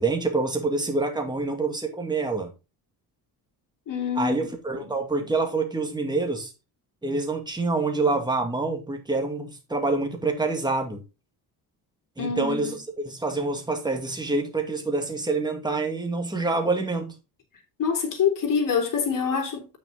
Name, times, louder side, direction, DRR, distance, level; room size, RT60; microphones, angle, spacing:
voice 1, 0.0-2.5 4.2-6.5 7.0-11.0 12.2-12.8 13.1-17.1, right 3 dB, 10° right, 2.1 m, -26 dB
voice 2, 3.9-4.4 4.7-4.9 12.2-12.8 17.8-19.7, left 6 dB, 55° left, 3.4 m, -26 dB
8.6 x 6.3 x 3.9 m
cardioid pair, 110°, 39 cm